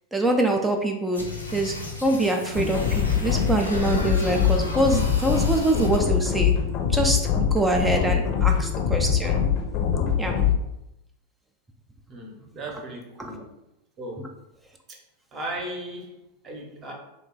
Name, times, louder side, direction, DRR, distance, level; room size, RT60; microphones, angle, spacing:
voice 1, 0.1-1.2 1.5-1.7 2.0-6.6 6.9-9.4 10.2-10.4 13.2-13.3, right 2 dB, 5° right, 2 dB, 0.4 m, -24 dB
sound 1, 1.1-6.0, left 2 dB, 80° left, 0.6 m, -37 dB
sound 2, 2.6-10.6, left 8 dB, 40° left, 0.6 m, -23 dB
voice 2, 12.1-13.5 14.0-14.3 14.9-15.0 15.3-16.9, right 1 dB, 30° right, 0 dB, 0.9 m, -37 dB
3.0 x 2.2 x 3.7 m, 0.88 s
figure-of-eight pair, 90°, 0 cm